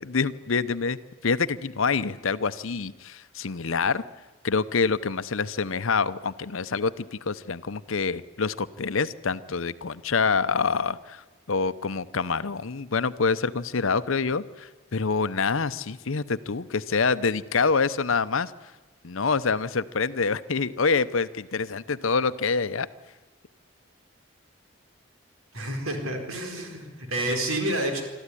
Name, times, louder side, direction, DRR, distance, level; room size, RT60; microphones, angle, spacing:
voice 1, 0.0-4.0 4.4-18.5 19.0-22.9, left 5 dB, 75° left, 14 dB, 0.8 m, -26 dB
voice 2, 25.5-28.0, right 1 dB, 90° right, 4 dB, 4.5 m, -29 dB
25.0 x 13.5 x 9.9 m, 1.2 s
head